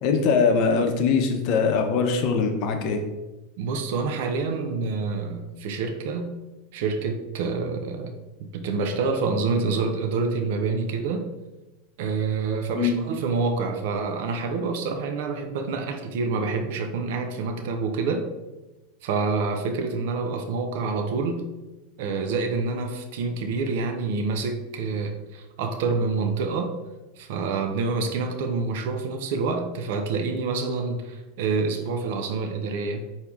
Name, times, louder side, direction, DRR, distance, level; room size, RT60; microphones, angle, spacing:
voice 1, 0.0-3.0 12.8-13.0, left 5 dB, 55° left, 4 dB, 0.7 m, -22 dB
voice 2, 3.6-6.3 6.7-8.1 8.4-11.3 12.0-18.3 19.0-21.4 22.0-26.8 27.2-33.0, right 4 dB, 70° right, 5 dB, 0.5 m, -27 dB
4.5 x 2.7 x 3.5 m, 1.1 s
supercardioid pair, 120°, 0 cm